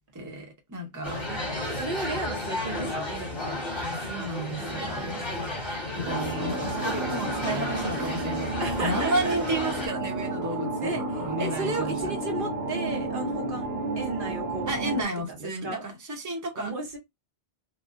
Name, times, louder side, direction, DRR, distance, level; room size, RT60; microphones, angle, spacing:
voice 1, 0.1-1.3 3.8-5.3 5.9-8.5 8.8-12.1 14.7-16.7, right 1 dB, 20° right, 0.8 m, -32 dB
sound 1, 1.0-9.9, left 1 dB, 45° left, 1.7 m, -33 dB
voice 2, 1.3-3.6 4.6-5.6 8.6-9.4 10.8-13.7 14.0-15.8 16.5-17.0, right 2 dB, 60° right, 1.1 m, -35 dB
sound 2, 6.1-15.0, right 2 dB, 85° right, 1.1 m, -31 dB
sound 3, 7.2-12.2, left 2 dB, 75° left, 1.6 m, -48 dB
4.2 x 2.2 x 2.5 m
omnidirectional pair, 1.0 m